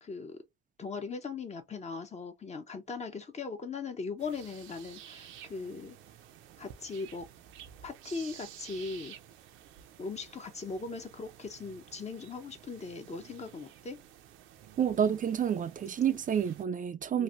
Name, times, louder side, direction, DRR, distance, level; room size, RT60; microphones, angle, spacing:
voice 1, 0.0-0.4 0.8-6.0 6.6-7.3 7.8-9.2 10.0-14.0 17.1-17.2, left 4 dB, 35° left, 0.9 m, -39 dB
sound 1, 4.2-16.6, right 10 dB, 85° right, 0.6 m, -52 dB
voice 2, 14.8-17.2, right 8 dB, 45° right, 0.4 m, -29 dB
3.1 x 2.6 x 2.6 m
cardioid pair, 90°, 20 cm